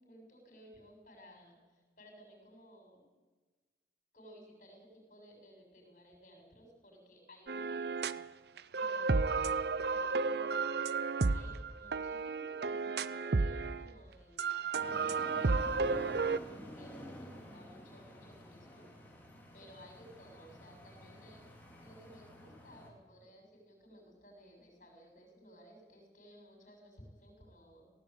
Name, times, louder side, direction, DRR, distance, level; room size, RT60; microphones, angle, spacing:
voice 1, 0.0-3.0 4.1-8.2 8.7-11.0 11.3-16.2 16.7-18.9 19.5-21.4 21.8-27.9, equal, 45° left, 2 dB, 7.1 m, -57 dB
sound 1, 7.5-8.3 8.6-13.9 14.4-16.4, right 4 dB, 70° right, 0.6 m, -32 dB
sound 2, 14.7-22.9, left 1 dB, 10° left, 3.1 m, -51 dB
18.0 x 17.0 x 8.9 m, 1.4 s
head